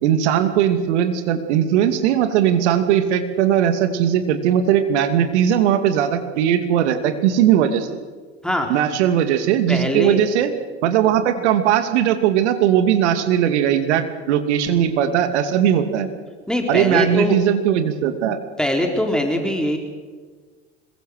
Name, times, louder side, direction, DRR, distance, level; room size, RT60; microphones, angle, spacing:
voice 1, 0.0-7.9 8.7-10.5 10.8-16.1 16.7-18.4, right 9 dB, 70° right, 9 dB, 2.6 m, -19 dB
voice 2, 9.7-10.2 16.5-17.4 18.6-19.8, left 1 dB, ahead, 2 dB, 4.0 m, -21 dB
26.0 x 22.0 x 6.6 m, 1.4 s
hypercardioid pair, 75°, 36 cm